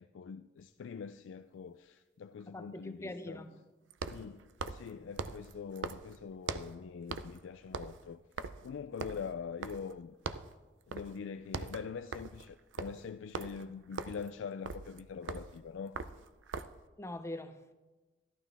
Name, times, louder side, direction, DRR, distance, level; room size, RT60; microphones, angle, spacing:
voice 1, 0.0-3.4 4.1-8.2 8.6-10.1 10.9-16.0, left 6 dB, 90° left, 0.4 m, -44 dB
sound 1, 0.6-0.7 3.9-6.8 7.1-7.4 7.7-10.0 10.3-10.6 10.9-11.2 11.4-16.9, right 4 dB, 80° right, 0.5 m, -42 dB
voice 2, 2.5-3.6 17.0-17.7, left 1 dB, 15° left, 0.6 m, -43 dB
14.0 x 11.5 x 3.4 m
head